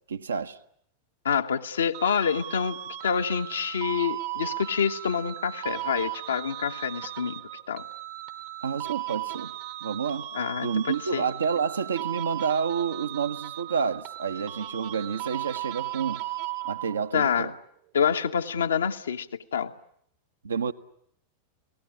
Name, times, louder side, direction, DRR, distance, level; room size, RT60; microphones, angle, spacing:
voice 1, 0.1-0.6 8.6-9.5 9.8-10.3 10.6-16.2 16.6-17.6 20.4-20.7, right 6 dB, 70° right, 1.1 m, -29 dB
voice 2, 1.2-7.4 7.7-7.8 10.3-11.3 17.1-17.5 17.9-19.3 19.5-19.7, left 7 dB, 70° left, 1.2 m, -27 dB
sound 1, 1.9-17.2, right 15 dB, 50° right, 1.2 m, -36 dB
30.0 x 18.5 x 9.9 m
figure-of-eight pair, 90°, 0 cm